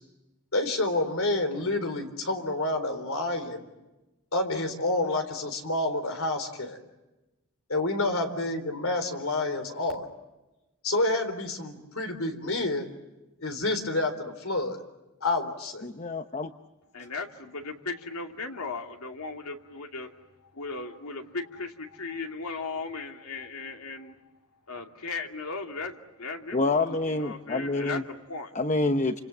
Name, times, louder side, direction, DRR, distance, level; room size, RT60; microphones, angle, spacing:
voice 1, 0.5-3.7 4.3-6.8 7.7-10.0 10.8-12.9 13.4-14.8 15.2-15.9, left 2 dB, 65° left, 7 dB, 3.9 m, -28 dB
voice 2, 15.8-16.5 26.5-28.0 28.5-29.2, left 2 dB, 35° left, 9 dB, 0.9 m, -27 dB
voice 3, 16.9-20.1 20.5-24.1 24.7-28.5, left 4 dB, 80° left, 3 dB, 2.5 m, -37 dB
29.0 x 26.5 x 7.3 m, 1.0 s
head